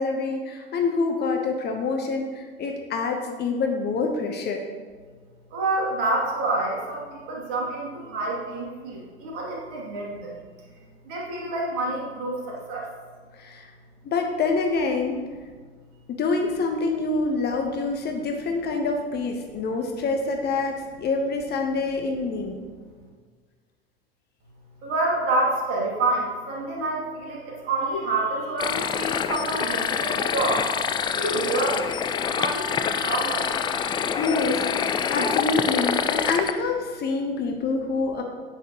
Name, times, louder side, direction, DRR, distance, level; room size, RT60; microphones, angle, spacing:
voice 1, 0.0-4.6 13.3-13.7 14.1-15.2 16.1-22.6 34.2-38.2, left 3 dB, 30° left, 3 dB, 1.1 m, -26 dB
voice 2, 5.5-10.3 11.0-12.9 19.6-19.7 24.8-30.7 31.2-31.9 32.3-33.4, right 2 dB, 50° right, -3 dB, 2.8 m, -27 dB
sound 1, 28.6-36.5, left 7 dB, 15° left, 0.3 m, -26 dB
9.9 x 8.5 x 3.0 m, 1.5 s
figure-of-eight pair, 75°, 31 cm